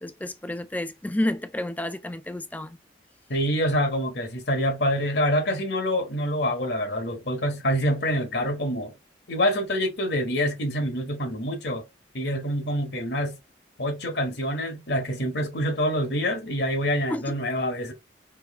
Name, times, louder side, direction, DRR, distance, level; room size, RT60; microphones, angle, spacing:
voice 1, 0.0-2.8 17.1-17.3, left 1 dB, 10° left, 0.4 m, -30 dB
voice 2, 3.3-8.9 9.3-11.8 12.1-13.4 13.8-17.9, equal, 65° left, 1.3 m, -26 dB
4.7 x 2.9 x 3.0 m
head